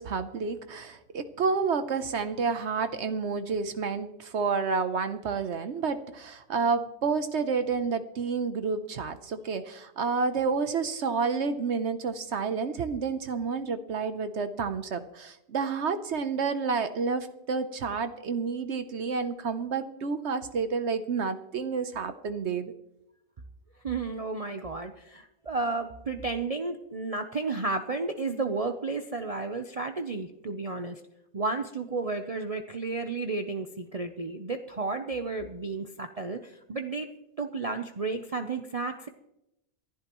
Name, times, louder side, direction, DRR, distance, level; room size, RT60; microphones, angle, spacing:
voice 1, 0.0-22.7, right 5 dB, 65° right, 10 dB, 1.1 m, -30 dB
voice 2, 23.8-31.0 31.3-37.1 37.4-39.1, right 3 dB, 35° right, 6 dB, 0.7 m, -32 dB
26.5 x 11.5 x 3.0 m, 0.87 s
omnidirectional pair, 1.3 m